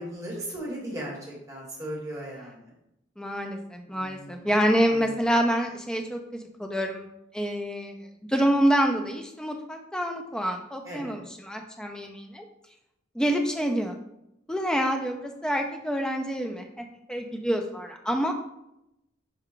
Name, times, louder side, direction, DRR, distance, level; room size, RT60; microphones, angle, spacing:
voice 1, 0.0-2.7 3.9-4.5 4.9-5.3 10.8-11.2, right 1 dB, 15° right, -4 dB, 1.1 m, -38 dB
voice 2, 3.2-6.2 6.6-7.1 7.3-7.9 8.3-12.4 13.2-13.9 14.5-18.3, equal, 5° left, 3 dB, 0.3 m, -27 dB
5.4 x 2.2 x 3.8 m, 0.84 s
head